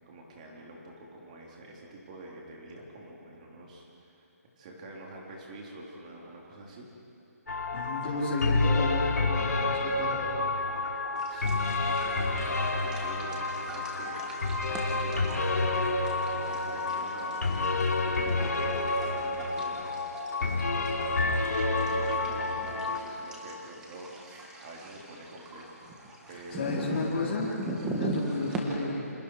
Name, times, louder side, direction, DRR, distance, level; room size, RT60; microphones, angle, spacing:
voice 1, 0.0-4.3 4.6-6.9 11.3-21.4 21.7-26.9 27.8-28.0, right 1 dB, 25° right, -2 dB, 3.7 m, -46 dB
sound 1, 7.5-23.0, left 3 dB, 80° left, 3.4 m, -29 dB
voice 2, 7.7-10.3 26.6-29.1, left 2 dB, 30° left, -8 dB, 4.7 m, -33 dB
sound 2, 11.2-28.6, right 2 dB, 5° right, 1.6 m, -41 dB
29.0 x 27.0 x 4.9 m, 2.8 s
hypercardioid pair, 170°, 9 cm